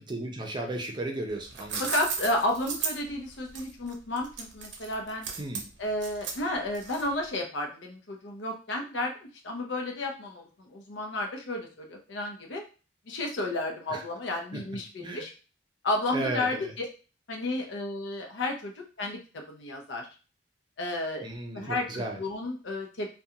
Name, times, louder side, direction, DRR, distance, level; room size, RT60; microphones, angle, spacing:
voice 1, 0.1-1.8 5.4-5.7 13.9-14.0 15.0-15.2 16.1-16.7 21.2-22.2, right 2 dB, 25° right, 2 dB, 0.5 m, -34 dB
sound 1, 1.3-7.3, right 5 dB, 75° right, 0.5 m, -36 dB
voice 2, 1.8-5.3 5.8-12.6 13.1-15.3 15.8-16.8 17.3-20.1 20.8-21.2 21.5-23.1, left 1 dB, 80° left, 2 dB, 0.6 m, -32 dB
2.4 x 2.2 x 2.8 m, 0.35 s
head